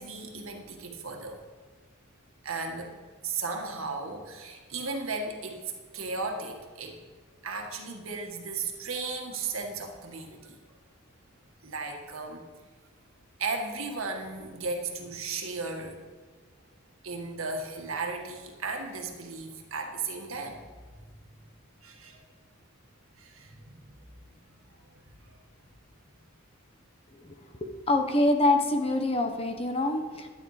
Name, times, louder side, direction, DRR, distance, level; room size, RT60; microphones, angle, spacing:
voice 1, 0.0-1.4 2.4-2.9 3.2-7.0 7.4-10.6 11.6-12.4 13.4-15.9 17.0-20.6 21.8-22.2 23.2-24.0 24.4-25.0 25.3-25.4, right 4 dB, 75° right, 2 dB, 1.7 m, -35 dB
voice 2, 27.6-30.3, left 2 dB, 30° left, 5 dB, 1.0 m, -25 dB
12.0 x 9.9 x 5.0 m, 1.4 s
head